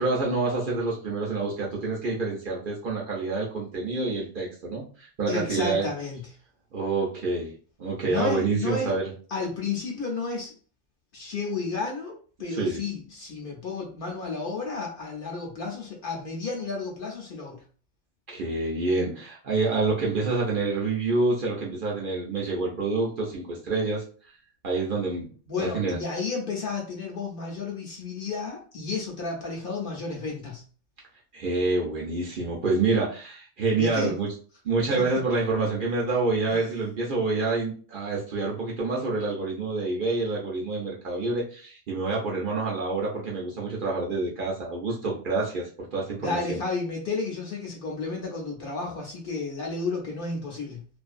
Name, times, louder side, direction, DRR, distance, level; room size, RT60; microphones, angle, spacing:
voice 1, 0.0-5.8 6.7-7.5 7.8-9.1 12.5-12.8 18.3-24.0 24.6-25.3 25.6-26.0 31.3-34.3 34.6-46.6, right 3 dB, 55° right, -3 dB, 0.7 m, -27 dB
voice 2, 5.3-6.3 8.0-8.9 9.3-10.5 11.1-17.6 25.5-30.6 33.8-34.1 35.0-35.1 36.5-36.6 46.2-50.8, left 4 dB, 55° left, 0 dB, 0.7 m, -32 dB
2.5 x 2.3 x 2.4 m, 0.41 s
omnidirectional pair, 1.2 m